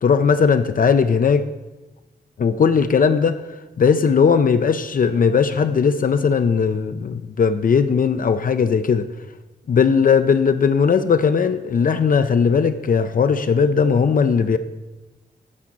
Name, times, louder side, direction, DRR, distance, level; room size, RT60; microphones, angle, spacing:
voice 1, 0.0-1.4 2.4-3.4 3.8-9.1 9.7-14.6, left 6 dB, 55° left, 9 dB, 0.4 m, -18 dB
8.5 x 5.0 x 7.3 m, 1.1 s
wide cardioid pair, 130°, 17 cm